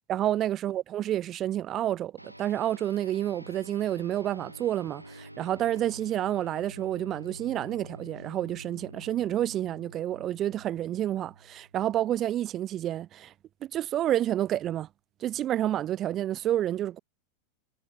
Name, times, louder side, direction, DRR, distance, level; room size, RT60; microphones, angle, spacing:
voice 1, 0.1-13.3 13.6-14.9 15.2-17.0, right 12 dB, 30° right, 0.6 m, -29 dB
sound 1, 2.2-11.9, right 1 dB, 90° right, 1.0 m, -47 dB
figure-of-eight pair, 90°, 0 cm